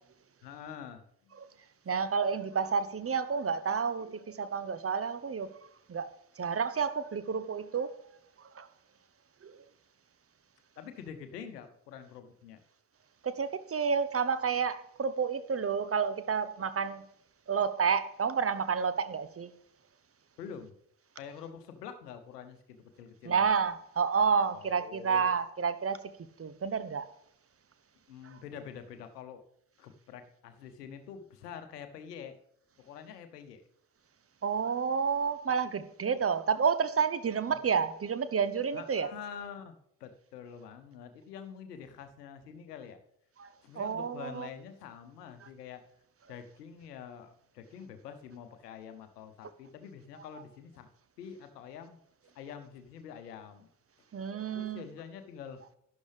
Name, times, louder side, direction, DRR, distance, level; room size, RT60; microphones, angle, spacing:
voice 1, 0.4-1.4 10.8-12.6 20.4-20.7 21.1-23.5 24.5-25.2 28.1-29.4 29.8-32.4 32.8-33.6 37.5-37.6 38.7-39.7 40.0-43.0 43.6-45.8 46.3-50.9 51.2-52.0 52.3-53.7 54.5-55.6, left 7 dB, 80° left, 1.0 m, -46 dB
voice 2, 1.9-5.5 5.9-6.1 6.4-7.9 8.4-8.7 9.4-9.6 13.2-17.0 17.5-19.5 23.2-26.0 26.4-27.1 28.2-28.4 34.4-39.1 43.4-43.5 43.7-44.5 54.1-54.8, right 6 dB, 30° right, 1.0 m, -30 dB
11.5 x 11.5 x 3.4 m
figure-of-eight pair, 45°, 47 cm